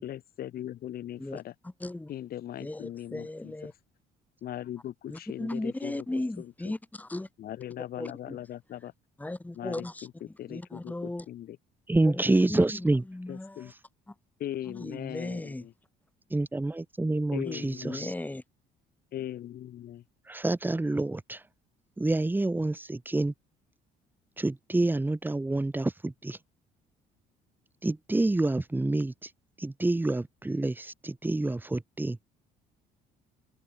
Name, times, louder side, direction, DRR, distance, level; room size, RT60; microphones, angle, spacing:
voice 1, 0.0-1.5 2.1-3.7 4.4-6.0 6.4-6.7 7.4-8.9 9.5-10.1 10.4-11.6 13.3-13.7 14.4-15.7 17.3-18.1 19.1-20.0, left 12 dB, 65° left, 4.5 m, -39 dB
voice 2, 1.8-2.1 2.6-3.7 5.1-7.3 8.0-8.4 9.2-10.1 10.5-11.3 12.0-13.7 14.1-14.2 14.7-15.7 17.4-18.4, left 2 dB, 10° left, 5.1 m, -36 dB
voice 3, 11.9-13.0 16.3-18.1 20.3-21.4 22.0-23.3 24.4-26.4 27.8-29.3 29.6-32.2, right 2 dB, 10° right, 4.1 m, -28 dB
cardioid pair, 110°, 17 cm